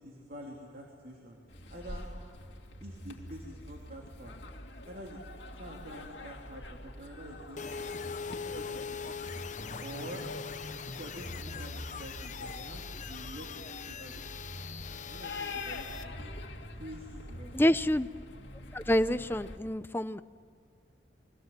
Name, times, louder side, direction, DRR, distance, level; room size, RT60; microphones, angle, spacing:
voice 1, 0.0-2.0 2.8-4.4 4.8-5.2 5.5-7.6 8.3-9.0 9.8-10.2 10.9-14.4 15.0-16.4 16.7-17.6, right 1 dB, 55° right, -2 dB, 3.4 m, -47 dB
sound 1, 1.5-19.6, left 1 dB, 80° left, 2.4 m, -45 dB
sound 2, 7.6-16.0, left 6 dB, 45° left, 0.8 m, -41 dB
voice 2, 17.5-18.1 18.7-20.2, equal, 10° left, 13 dB, 0.6 m, -27 dB
29.5 x 23.5 x 7.5 m, 2.3 s
head